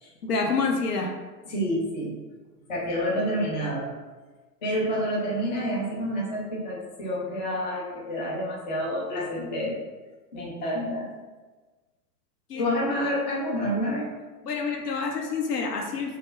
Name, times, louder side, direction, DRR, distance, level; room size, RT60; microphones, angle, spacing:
voice 1, 0.2-1.1 12.5-12.7 14.4-16.2, left 4 dB, 75° left, 2 dB, 0.6 m, -27 dB
voice 2, 1.5-2.2 2.7-3.9 4.6-9.8 10.3-11.1 12.6-14.1 14.6-14.8, equal, 30° left, -4 dB, 0.4 m, -28 dB
2.2 x 2.0 x 3.2 m, 1.3 s
figure-of-eight pair, 110°, 49 cm